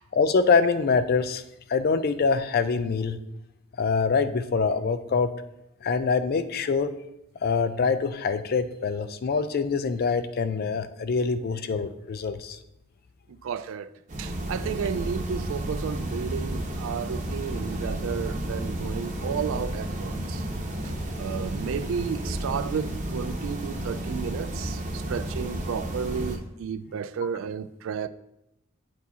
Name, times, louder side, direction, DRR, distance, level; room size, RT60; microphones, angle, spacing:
voice 1, 0.1-1.4 1.7-3.2 3.8-5.3 5.8-6.9 7.4-12.6, left 5 dB, 45° left, 0.4 m, -24 dB
voice 2, 13.3-13.9 14.2-20.4 21.2-28.1, right 7 dB, 65° right, 0.3 m, -32 dB
sound 1, 14.1-26.4, right 1 dB, 35° right, 0.9 m, -32 dB
9.3 x 4.6 x 2.8 m
head